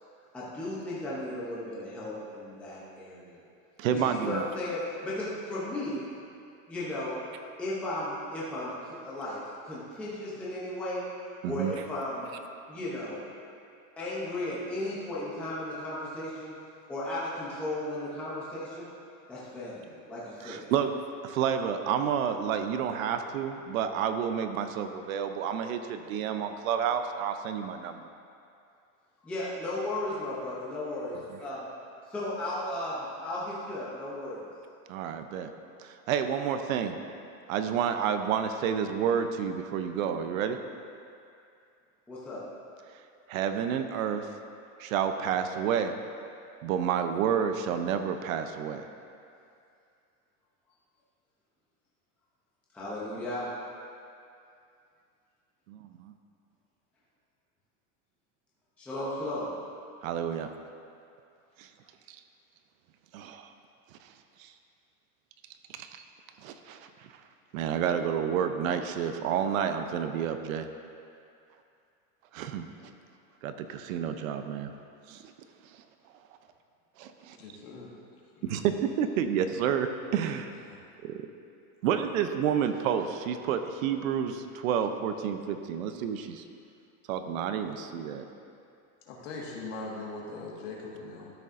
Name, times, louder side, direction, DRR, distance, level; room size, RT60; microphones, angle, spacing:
voice 1, 0.3-3.4 3.9-6.0 6.7-7.2 7.6-9.4 9.6-11.1 11.4-12.3 12.7-13.2 14.0-16.5 16.9-18.9 19.3-20.6 29.2-31.7 32.1-34.5 42.1-42.4 52.7-53.5 58.8-59.5, left 1 dB, 5° left, -8 dB, 0.5 m, -35 dB
voice 2, 3.8-4.5 11.4-11.7 20.4-20.9 21.2-28.0 31.3-31.4 34.9-35.5 35.8-37.0 37.5-40.6 43.3-44.3 44.8-46.0 46.6-48.8 55.7-56.1 60.0-60.5 61.6-61.7 62.1-62.2 63.1-63.5 64.0-64.1 64.4-64.5 65.7-65.9 66.4-67.1 67.5-70.7 72.3-72.9 73.4-74.7 75.1-75.3 75.7-75.8 77.0-77.4 78.4-80.5 81.0-81.2 81.8-86.4 87.1-88.2, right 8 dB, 65° right, 8 dB, 0.6 m, -30 dB
voice 3, 77.3-77.9 78.3-78.6 80.7-80.8 89.1-91.3, left 3 dB, 60° left, -3 dB, 1.7 m, -41 dB
12.5 x 6.7 x 2.5 m, 2.5 s
supercardioid pair, 175°, 44 cm